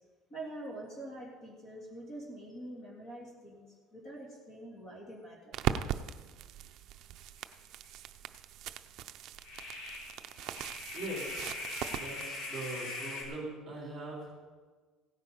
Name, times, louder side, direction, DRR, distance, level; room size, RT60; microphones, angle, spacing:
voice 1, 0.3-5.5, right 1 dB, 35° left, -3 dB, 3.0 m, -45 dB
sound 1, 5.5-12.3, right 10 dB, 45° right, 0.5 m, -39 dB
sound 2, 7.4-7.5 7.8-7.9 9.4-13.2, left 2 dB, 65° left, 3.5 m, -41 dB
voice 2, 10.9-11.6 11.9-14.3, right 1 dB, 10° right, -3 dB, 3.7 m, -41 dB
16.0 x 9.5 x 5.4 m, 1.4 s
cardioid pair, 175°, 0 cm